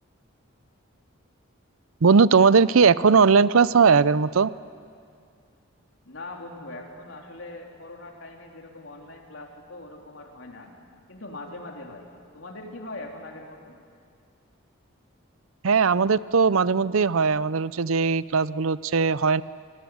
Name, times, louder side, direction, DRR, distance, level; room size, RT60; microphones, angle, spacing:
voice 1, 2.0-4.5 15.6-19.4, right 5 dB, 85° right, 18 dB, 0.6 m, -19 dB
voice 2, 6.0-10.7 11.1-12.1 12.3-13.8, left 2 dB, 65° left, 1 dB, 3.7 m, -41 dB
26.5 x 20.0 x 9.5 m, 2.3 s
head